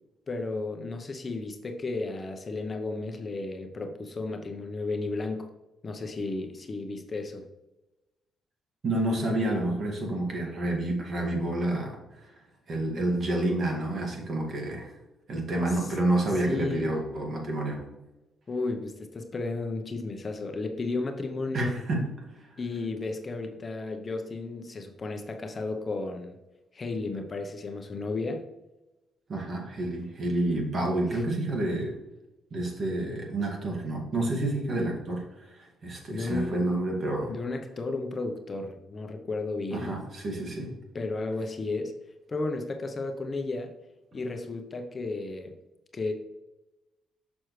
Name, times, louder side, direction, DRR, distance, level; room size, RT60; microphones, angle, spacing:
voice 1, 0.3-5.5 5.8-7.5 15.8-15.9 16.5-16.8 18.5-21.7 22.6-26.4 26.7-28.4 36.1-36.6 37.2-39.9 40.9-41.9 42.3-43.7 44.1-45.5 45.9-46.1, left 3 dB, 35° left, 5 dB, 0.8 m, -33 dB
voice 2, 8.8-12.3 12.7-15.0 15.3-17.9 21.5-22.6 29.3-32.0 32.5-37.4 39.7-40.7, right 1 dB, 45° right, 0 dB, 2.0 m, -29 dB
6.2 x 6.1 x 3.2 m, 1.0 s
cardioid pair, 90°, 0 cm